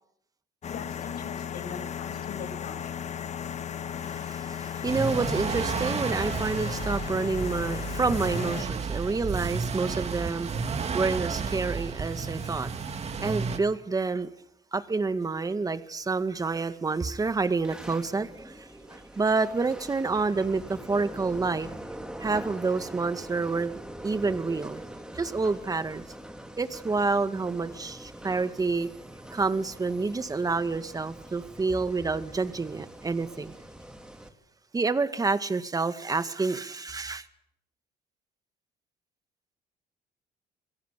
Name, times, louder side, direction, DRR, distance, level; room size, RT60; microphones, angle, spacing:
sound 1, 0.6-8.6, left 8 dB, 40° left, 1.4 m, -35 dB
voice 1, 0.7-2.9, left 6 dB, 65° left, 6.7 m, -41 dB
voice 2, 4.0-12.7 13.2-14.3 14.7-21.7 22.2-24.8 25.1-26.0 26.6-28.9 29.3-33.5 34.7-37.3, right 4 dB, 20° right, 1.9 m, -28 dB
sound 2, 4.9-13.6, right 5 dB, 40° right, 2.7 m, -32 dB
sound 3, 16.9-34.3, right 1 dB, 5° right, 3.1 m, -44 dB
27.5 x 22.0 x 8.4 m
cardioid pair, 110°, 17 cm